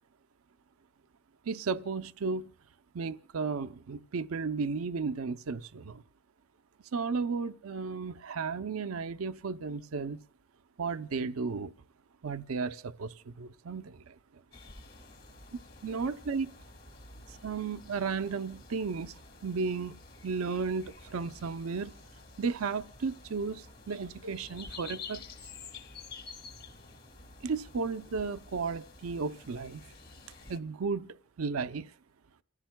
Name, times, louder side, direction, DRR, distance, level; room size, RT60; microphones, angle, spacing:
voice 1, 1.5-2.5 2.9-6.0 6.9-10.2 10.8-11.7 12.2-14.2 15.8-16.5 17.3-22.0 22.4-25.2 27.4-29.8 30.5-31.9, right 4 dB, 90° right, 0.6 m, -34 dB
sound 1, 14.5-30.6, left 4 dB, 45° left, 1.8 m, -50 dB
29.5 x 15.0 x 2.2 m
head